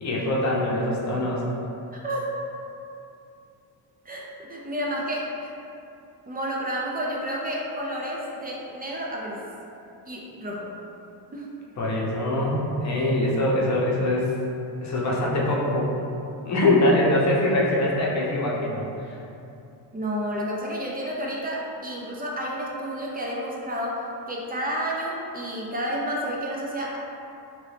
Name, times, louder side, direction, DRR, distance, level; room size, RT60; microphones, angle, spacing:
voice 1, 0.0-1.4 11.8-14.3 14.8-15.9 16.4-19.2, left 1 dB, 40° left, -4 dB, 0.7 m, -23 dB
voice 2, 2.0-2.5 4.1-5.5 6.3-9.4 10.1-10.8 11.3-11.5 19.9-27.0, equal, 20° right, -3 dB, 0.4 m, -30 dB
3.0 x 2.6 x 3.3 m, 2.7 s
cardioid pair, 105°, 44 cm